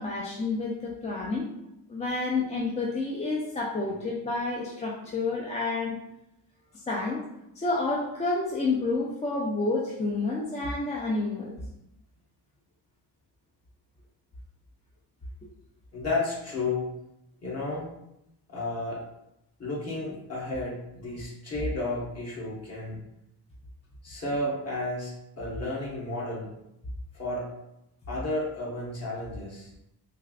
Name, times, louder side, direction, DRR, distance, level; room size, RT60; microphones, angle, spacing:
voice 1, 0.0-1.5 1.9-6.0 6.9-7.2 7.6-11.5, left 3 dB, 20° left, -3 dB, 0.3 m, -29 dB
voice 2, 15.9-16.9 17.4-17.8 18.5-19.0 19.6-23.0 24.0-26.5 27.1-27.5 28.1-29.7, left 2 dB, 35° left, -5 dB, 1.2 m, -32 dB
3.3 x 2.5 x 2.3 m, 0.84 s
cardioid pair, 115°, 41 cm